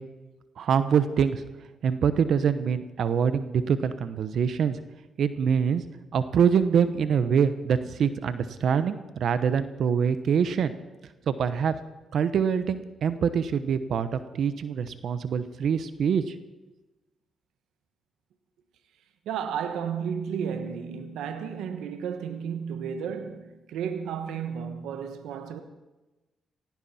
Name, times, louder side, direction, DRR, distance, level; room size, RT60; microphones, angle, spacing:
voice 1, 0.6-1.4 1.8-4.8 5.2-5.8 6.1-10.7 11.3-11.7 12.1-16.3, right 7 dB, 70° right, 1.0 m, -25 dB
voice 2, 19.2-25.6, right 7 dB, 85° right, 1.2 m, -33 dB
17.5 x 16.5 x 4.3 m
cardioid pair, 65°, 0 cm